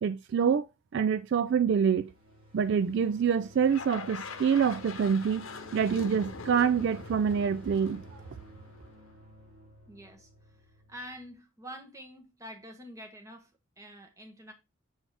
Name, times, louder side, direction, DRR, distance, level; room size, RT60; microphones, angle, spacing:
voice 1, 0.0-0.7 0.9-2.1 2.5-5.5 5.7-8.0, right 7 dB, 55° right, 0.3 m, -26 dB
sound 1, 1.2-11.3, equal, 85° right, 4.3 m, -53 dB
sound 2, 3.7-9.0, left 4 dB, 75° left, 0.9 m, -43 dB
voice 2, 9.9-14.5, equal, 15° right, 1.2 m, -47 dB
6.9 x 4.1 x 3.5 m
head